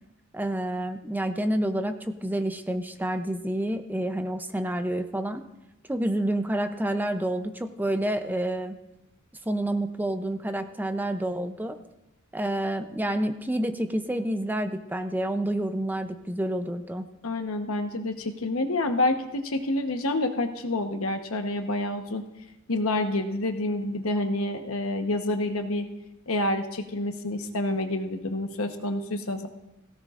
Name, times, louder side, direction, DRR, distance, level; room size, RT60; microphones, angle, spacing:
voice 1, 0.3-5.4 5.9-8.8 9.5-11.8 12.3-17.0, right 1 dB, 10° right, 7 dB, 0.5 m, -28 dB
voice 2, 17.2-22.2 22.7-25.9 26.3-29.5, left 2 dB, 85° left, 6 dB, 1.1 m, -28 dB
17.0 x 16.5 x 2.5 m, 0.93 s
head